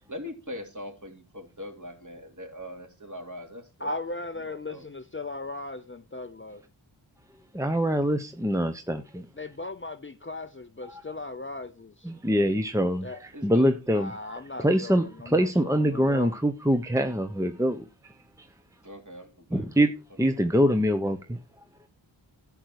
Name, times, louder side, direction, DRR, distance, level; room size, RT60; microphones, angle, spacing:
voice 1, 0.1-4.9 13.3-13.7 18.8-19.7, left 1 dB, 40° right, 3.3 m, -42 dB
voice 2, 3.8-6.6 9.4-12.1 13.0-13.2 13.9-16.3, left 2 dB, 25° left, 0.7 m, -37 dB
voice 3, 7.5-9.3 10.8-11.0 12.0-18.5 19.5-19.9 20.2-21.4, equal, 5° right, 0.9 m, -25 dB
11.0 x 7.9 x 4.8 m
wide cardioid pair, 55°, 47 cm